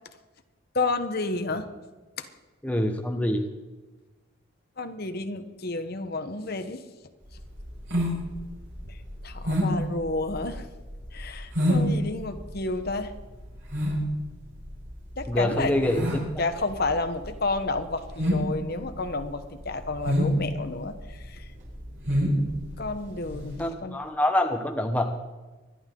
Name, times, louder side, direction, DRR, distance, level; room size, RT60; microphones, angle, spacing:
voice 1, 0.7-1.7 2.2-2.3 4.8-6.8 8.8-9.0 9.2-10.7 11.1-13.1 15.2-21.5 22.8-24.0, left 3 dB, 50° left, 8 dB, 1.1 m, -31 dB
voice 2, 2.6-3.5 15.3-16.2 23.6-25.2, left 1 dB, 5° left, 4 dB, 1.0 m, -25 dB
sound 1, 7.3-23.6, equal, 60° right, 6.0 m, -29 dB
25.5 x 11.5 x 3.8 m, 1.2 s
head